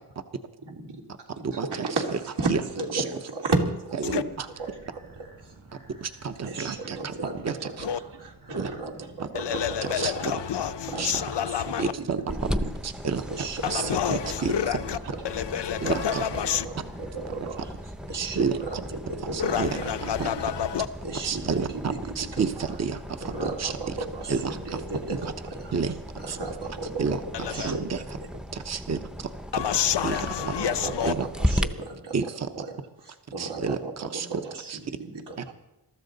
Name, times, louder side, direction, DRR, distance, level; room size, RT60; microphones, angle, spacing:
voice 1, 0.6-5.5 6.4-7.9 8.2-10.3 10.9-12.7 13.0-14.3 14.6-15.2 15.8-20.5 21.0-22.7 23.2-25.7 26.2-28.3 30.4-32.2 32.5-32.7 33.0-35.5, right 3 dB, 85° right, 2.9 m, -35 dB
voice 2, 1.4-1.9 2.5-2.6 3.0-3.1 4.0-4.1 5.7-7.1 7.4-7.6 8.6-8.7 9.2-9.3 10.0-10.1 11.0-11.1 11.8-12.2 12.8-13.2 13.7-14.5 15.8-16.2 18.1-18.5 19.3-19.8 20.2-20.3 21.2-21.7 22.2-23.2 23.6-23.7 24.3-24.8 25.2-25.3 25.7-25.9 26.3-26.4 27.0-27.2 27.6-28.0 28.5-29.0 30.0-30.2 31.0-31.3 32.1-32.5 33.4-34.3 34.7-34.8, right 6 dB, 40° right, 0.8 m, -29 dB
sound 1, 4.2-22.9, right 2 dB, 65° right, 6.6 m, -52 dB
voice 3, 9.3-11.9 13.6-15.0 15.2-16.7 19.4-20.9 27.3-27.7 29.5-31.1, left 9 dB, 85° left, 0.8 m, -28 dB
sound 2, 12.3-31.7, equal, ahead, 0.6 m, -36 dB
22.5 x 13.5 x 4.0 m
wide cardioid pair, 135°, 40 cm